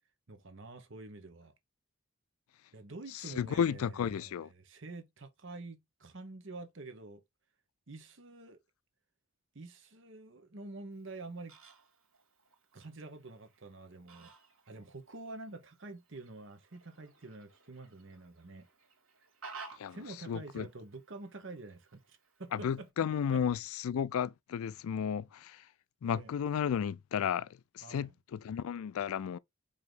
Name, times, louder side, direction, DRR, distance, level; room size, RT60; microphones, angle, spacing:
voice 1, 0.3-1.5 2.7-7.2 7.9-8.6 9.5-11.6 12.7-14.3 14.7-18.7 19.9-22.9 23.3-23.4 26.0-26.3 27.8-28.1, right 2 dB, 60° right, 1.0 m, -47 dB
voice 2, 3.3-4.5 19.8-20.0 20.3-20.7 22.5-25.6 26.0-27.5 27.7-29.4, left 8 dB, 80° left, 0.3 m, -33 dB
Fowl, 10.9-22.9, right 4 dB, 75° right, 2.3 m, -56 dB
4.9 x 2.8 x 3.8 m
head